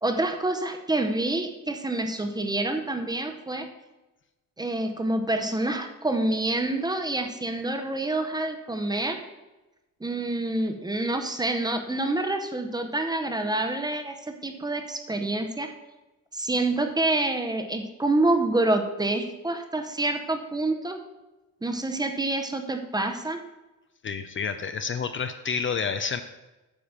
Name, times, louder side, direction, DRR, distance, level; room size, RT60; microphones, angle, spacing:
voice 1, 0.0-3.7 4.6-9.2 10.0-15.7 16.3-21.0 21.6-23.4, right 2 dB, 10° right, 5 dB, 0.7 m, -27 dB
voice 2, 24.0-26.2, left 6 dB, 40° left, 9 dB, 0.5 m, -29 dB
8.8 x 5.0 x 7.2 m, 1.1 s
wide cardioid pair, 160°, 33 cm